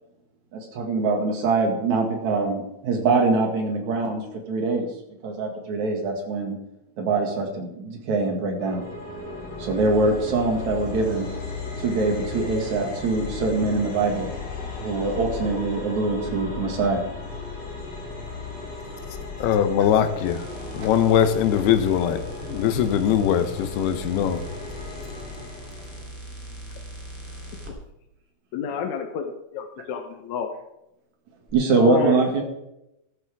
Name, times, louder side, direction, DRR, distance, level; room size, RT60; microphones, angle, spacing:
voice 1, 0.5-4.9 5.2-6.6 7.0-8.8 9.6-11.3 11.8-14.3 14.8-17.0 31.5-32.4, right 3 dB, 55° right, 3.1 m, -23 dB
sound 1, 8.6-26.0, left 3 dB, 45° left, 5.1 m, -35 dB
voice 2, 19.4-20.4 20.7-24.4, left 9 dB, 85° left, 3.0 m, -21 dB
sound 2, 20.2-27.7 31.5-31.6, equal, 5° right, 2.3 m, -40 dB
voice 3, 28.5-29.2 29.5-30.5 31.7-32.3, left 6 dB, 70° left, 1.8 m, -29 dB
14.0 x 12.5 x 3.6 m
omnidirectional pair, 4.5 m